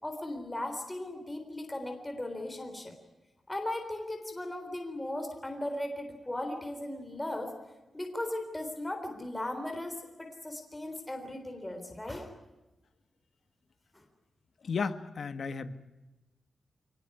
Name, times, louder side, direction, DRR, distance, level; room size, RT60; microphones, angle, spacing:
voice 1, 0.0-2.9 3.5-7.5 7.9-12.3 13.9-14.0, left 1 dB, 15° left, 5 dB, 3.7 m, -37 dB
voice 2, 14.6-15.8, left 5 dB, 65° left, 10 dB, 1.5 m, -34 dB
24.0 x 19.5 x 9.8 m, 1.1 s
wide cardioid pair, 110°, 0 cm